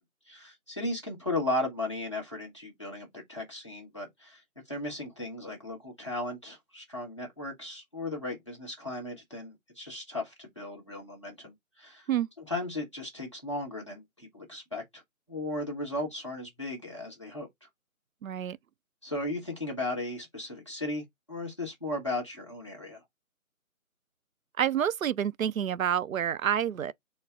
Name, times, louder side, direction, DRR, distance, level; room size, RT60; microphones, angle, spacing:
voice 1, 0.3-4.4 4.7-12.1 12.4-15.0 15.3-17.5 19.0-23.0, left 2 dB, 20° left, 1.0 m, -36 dB
voice 2, 18.2-18.6 24.6-26.9, right 9 dB, 75° right, 0.5 m, -28 dB
4.2 x 2.2 x 3.5 m
figure-of-eight pair, 175°, 42 cm